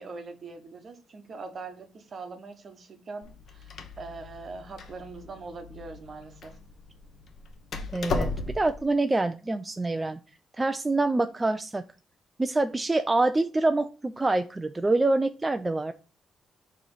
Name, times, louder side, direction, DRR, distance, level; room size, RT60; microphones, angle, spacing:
voice 1, 0.0-6.6, right 4 dB, 40° right, 1.0 m, -42 dB
Door, 3.2-8.8, left 3 dB, 55° left, 0.9 m, -36 dB
voice 2, 7.9-8.3 8.5-10.2 10.5-11.8 12.4-15.9, right 2 dB, 15° right, 0.3 m, -26 dB
6.5 x 3.1 x 5.4 m
cardioid pair, 140°, 0 cm